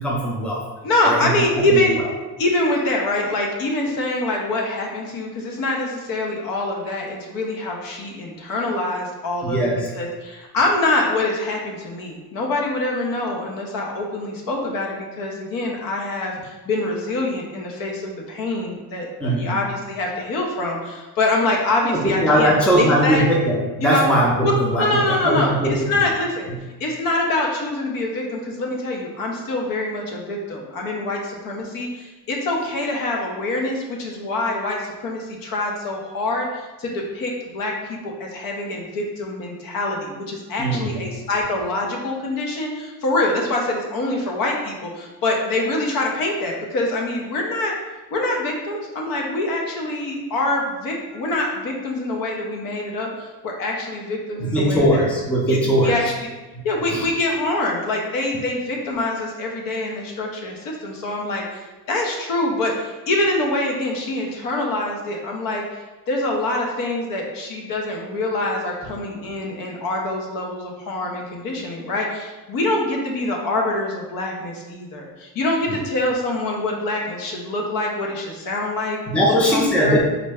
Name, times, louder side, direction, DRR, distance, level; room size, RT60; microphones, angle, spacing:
voice 1, 0.0-0.6 1.0-1.4 1.7-1.8 9.4-9.9 19.2-19.6 21.8-25.9 40.6-41.0 54.4-56.0 56.9-57.1 75.7-75.8 79.1-80.0, equal, 5° left, -3 dB, 0.5 m, -20 dB
voice 2, 0.8-2.0 2.4-9.7 9.9-23.3 23.8-24.1 24.4-24.5 24.8-26.5 26.8-47.8 48.1-55.1 55.5-56.1 56.6-61.6 61.9-65.8 66.1-79.3 79.5-80.0, left 2 dB, 60° left, 0 dB, 0.8 m, -25 dB
3.8 x 2.2 x 3.5 m, 1.2 s
cardioid pair, 120°, 38 cm